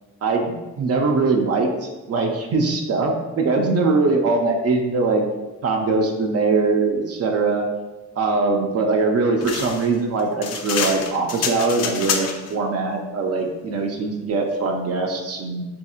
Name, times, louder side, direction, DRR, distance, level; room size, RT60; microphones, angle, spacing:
voice 1, 0.2-5.2 5.6-7.7 8.2-15.7, right 3 dB, 55° right, 2 dB, 0.4 m, -22 dB
sound 1, 9.4-12.5, left 6 dB, 60° left, 0.4 m, -27 dB
3.5 x 2.7 x 2.4 m, 1.1 s
cardioid pair, 120°, 29 cm